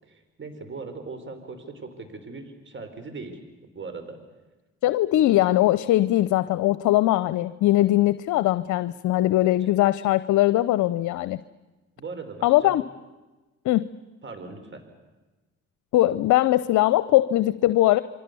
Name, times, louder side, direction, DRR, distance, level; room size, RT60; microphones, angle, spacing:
voice 1, 0.0-3.4 3.7-4.2 12.0-12.7 14.2-14.8, right 4 dB, 35° right, 7 dB, 5.3 m, -39 dB
voice 2, 4.8-11.4 12.4-12.8 13.6-13.9 15.9-18.0, left 15 dB, 65° left, 15 dB, 0.7 m, -21 dB
28.5 x 23.5 x 7.0 m, 1.2 s
supercardioid pair, 65°, 32 cm